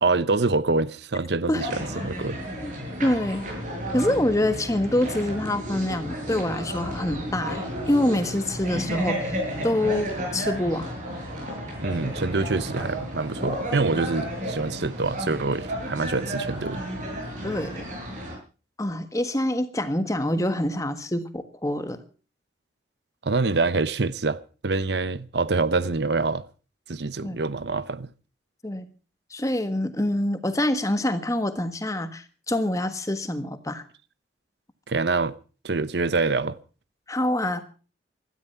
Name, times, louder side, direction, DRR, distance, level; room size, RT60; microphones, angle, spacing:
voice 1, 0.0-2.4 11.8-16.8 23.2-26.4 26.9-28.1 34.9-35.4 35.6-36.6, right 3 dB, 70° right, 0.8 m, -25 dB
sound 1, 1.5-18.4, equal, 45° right, 7.8 m, -32 dB
voice 2, 3.0-3.4 3.9-9.3 9.6-10.9 17.4-17.9 18.8-22.0 27.2-27.4 28.6-28.9 29.3-33.8 37.1-37.6, left 1 dB, 20° left, 1.4 m, -26 dB
16.5 x 13.5 x 5.7 m
head